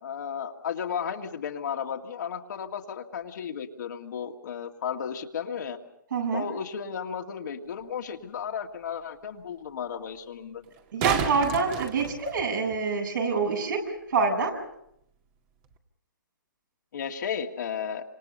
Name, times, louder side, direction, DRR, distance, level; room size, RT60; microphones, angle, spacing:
voice 1, 0.0-5.8 6.3-10.6 16.9-18.0, left 7 dB, 60° left, 2 dB, 2.3 m, -34 dB
voice 2, 6.1-6.5 10.9-14.6, right 4 dB, 65° right, 2 dB, 7.9 m, -26 dB
sound 1, 7.8-7.9 10.6-12.8 15.6-15.7, right 8 dB, 30° right, 2.1 m, -31 dB
28.0 x 26.5 x 5.6 m, 0.74 s
hypercardioid pair, 145°, 11 cm